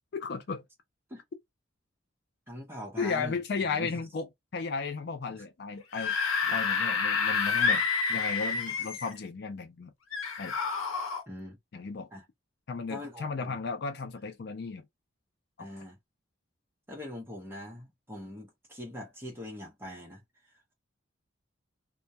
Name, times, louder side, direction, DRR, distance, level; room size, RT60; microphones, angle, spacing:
voice 1, 0.1-0.6 3.0-4.3 4.5-6.2 6.5-7.8 8.1-9.9 10.4-10.9 11.7-12.1 12.7-14.9 15.6-15.7, left 4 dB, 50° left, 0.4 m, -34 dB
voice 2, 2.5-3.9 5.3-5.4 6.4-6.6 11.3-11.6 12.1-12.2 12.9-13.6 15.6-16.0 16.9-20.2, left 1 dB, 10° right, 0.8 m, -42 dB
Screaming / Screech, 5.8-9.2 10.1-11.2, left 5 dB, 80° left, 0.8 m, -29 dB
2.2 x 2.2 x 2.7 m
head